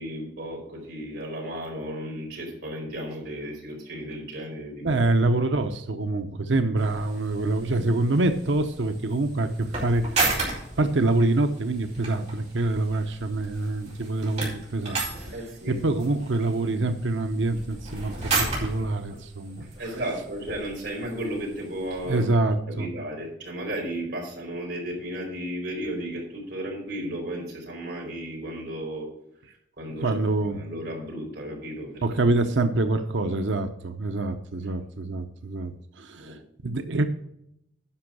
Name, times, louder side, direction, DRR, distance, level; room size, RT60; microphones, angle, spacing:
voice 1, 0.0-5.0 15.3-15.8 19.8-22.3 22.7-29.1 29.5-32.0 36.2-36.4, right 1 dB, 65° right, -2 dB, 4.6 m, -34 dB
voice 2, 4.8-10.3 10.8-15.3 15.7-19.7 22.1-22.9 30.0-30.6 32.0-37.0, right 2 dB, 85° right, 8 dB, 0.8 m, -25 dB
sound 1, 6.8-22.3, right 3 dB, 35° right, 4.4 m, -34 dB
10.0 x 6.2 x 6.0 m, 0.76 s
head